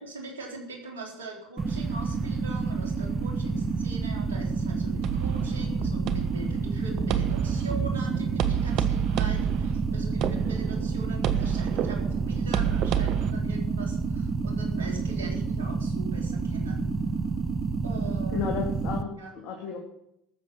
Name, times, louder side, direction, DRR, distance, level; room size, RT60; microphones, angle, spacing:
voice 1, 0.0-16.9 17.8-18.5 19.2-19.3, right 2 dB, 90° right, 1 dB, 4.0 m, -41 dB
sound 1, 1.6-19.0, right 4 dB, 30° right, 1.1 m, -29 dB
sound 2, 5.0-13.3, right 10 dB, 60° right, 1.3 m, -30 dB
voice 2, 18.3-19.8, left 6 dB, 60° left, 0 dB, 2.9 m, -33 dB
13.5 x 7.3 x 7.5 m, 0.78 s
hypercardioid pair, 75°, 0 cm